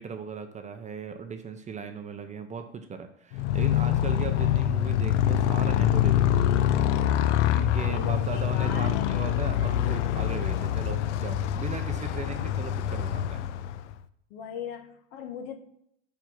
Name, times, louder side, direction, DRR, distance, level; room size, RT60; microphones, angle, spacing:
voice 1, 0.0-6.4 7.5-13.5, right 5 dB, 20° right, 7 dB, 0.6 m, -37 dB
Motorcycle, 3.3-14.0, left 11 dB, 80° left, 0.5 m, -25 dB
voice 2, 7.9-9.4 9.8-10.1 14.3-15.6, left 7 dB, 65° left, 6 dB, 1.2 m, -39 dB
5.3 x 4.5 x 5.9 m, 0.73 s
hypercardioid pair, 105°, 35 cm